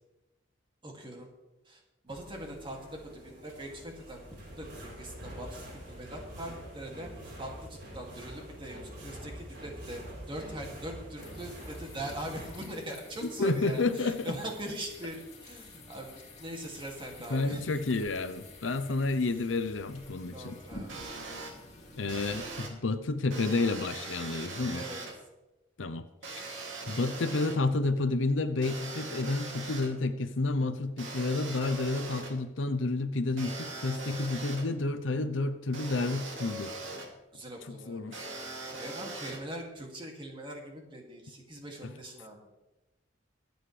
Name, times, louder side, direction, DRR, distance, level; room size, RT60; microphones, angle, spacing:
voice 1, 0.8-1.3 1.7-4.2 4.6-5.6 5.9-7.1 7.4-10.0 10.3-17.8 20.3-21.0 21.4-21.6 24.7-25.0 37.3-38.2 38.8-42.4, right 1 dB, 25° right, 1 dB, 2.4 m, -42 dB
sound 1, 2.1-12.5, equal, 60° right, 4.9 m, -46 dB
sound 2, 11.2-22.7, left 2 dB, 35° left, 2.9 m, -50 dB
voice 2, 13.4-14.4 17.3-20.6 22.0-24.9 25.8-26.0 26.9-36.9 37.7-38.3 41.8-41.9, left 3 dB, 80° left, 10 dB, 0.7 m, -30 dB
sound 3, 20.9-21.5 22.1-22.7 23.3-25.1 26.2-27.6 28.6-29.9 31.0-32.3 33.4-34.6 35.7-37.1 38.1-39.4, right 3 dB, 85° right, 2.6 m, -41 dB
23.5 x 8.0 x 3.3 m, 1.0 s
head